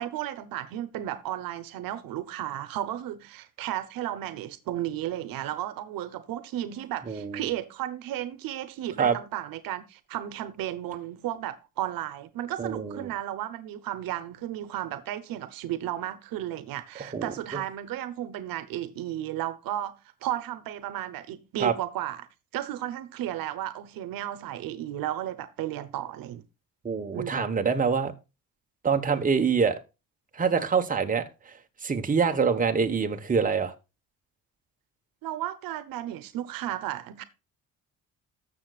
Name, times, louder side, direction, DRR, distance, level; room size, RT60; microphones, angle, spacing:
voice 1, 0.0-19.9 20.2-22.3 22.5-26.4 27.1-27.3 35.2-37.2, right 12 dB, 80° right, 1.0 m, -34 dB
voice 2, 7.1-7.4 9.0-9.1 12.6-13.1 17.0-17.2 21.6-21.7 26.8-28.1 28.8-29.8 30.3-31.2 31.8-33.7, right 6 dB, 25° right, 1.2 m, -25 dB
14.0 x 6.8 x 2.4 m
cardioid pair, 100°, 34 cm